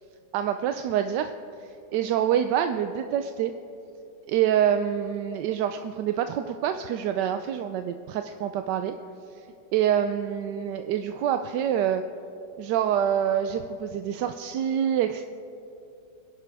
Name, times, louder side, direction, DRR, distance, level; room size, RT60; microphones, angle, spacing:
voice 1, 0.3-1.3 1.6-3.5 4.3-8.9 9.7-12.0 12.6-15.3, right 9 dB, 75° right, 8 dB, 1.1 m, -26 dB
26.0 x 11.0 x 3.4 m, 2.8 s
omnidirectional pair, 2.0 m